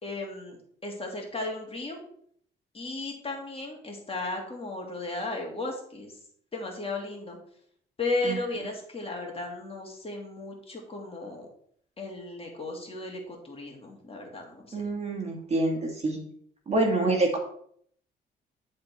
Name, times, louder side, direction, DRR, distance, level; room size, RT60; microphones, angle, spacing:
voice 1, 0.0-2.0 2.7-6.2 6.5-7.4 8.0-11.5 12.0-14.8, left 2 dB, 30° left, 0 dB, 2.5 m, -35 dB
voice 2, 14.7-16.2 16.7-17.4, right 2 dB, 30° right, 1 dB, 2.1 m, -26 dB
10.5 x 4.3 x 4.4 m, 0.64 s
cardioid pair, 90°, 20 cm